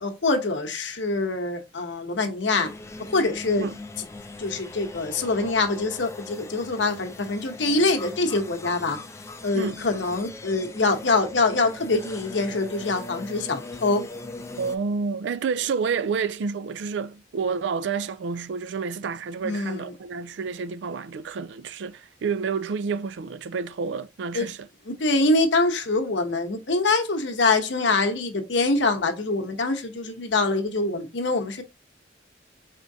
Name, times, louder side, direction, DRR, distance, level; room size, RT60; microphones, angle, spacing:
voice 1, 0.0-2.7 3.1-3.7 4.4-9.0 9.4-14.0 19.4-19.9 24.3-24.5 24.9-31.6, left 3 dB, 80° left, 0.9 m, -24 dB
sound 1, 2.6-14.8, left 2 dB, 15° left, 0.4 m, -40 dB
voice 2, 9.5-9.8 14.6-24.7, right 5 dB, 75° right, 0.4 m, -29 dB
4.4 x 3.7 x 2.7 m
head